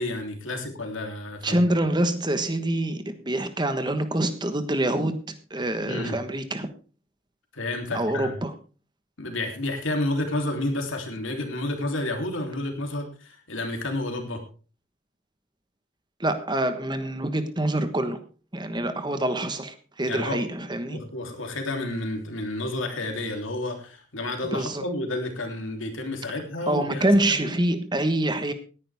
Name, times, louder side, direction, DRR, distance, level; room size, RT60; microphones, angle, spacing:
voice 1, 0.0-1.6 5.8-6.2 7.5-8.3 9.2-14.4 20.1-20.4 20.9-27.5, left 2 dB, 80° left, 4 dB, 3.2 m, -30 dB
voice 2, 1.4-6.7 7.9-8.5 16.2-18.2 18.5-21.0 24.5-24.8 26.7-28.5, right 1 dB, 20° right, 9 dB, 1.2 m, -26 dB
18.0 x 10.5 x 3.5 m, 0.37 s
head